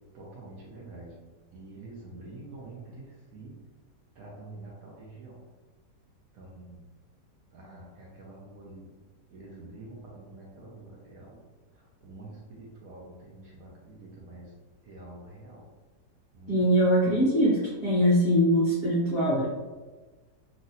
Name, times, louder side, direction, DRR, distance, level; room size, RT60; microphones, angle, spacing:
voice 1, 0.1-1.2 1.5-3.1 3.3-3.5 4.2-5.4 6.3-6.8 7.5-8.9 9.3-11.4 12.0-14.5 14.9-15.6 16.3-16.5, right 2 dB, 70° right, -5 dB, 0.9 m, -46 dB
voice 2, 16.5-19.5, equal, 60° left, -9 dB, 0.6 m, -22 dB
3.0 x 2.6 x 2.7 m, 1.3 s
omnidirectional pair, 1.9 m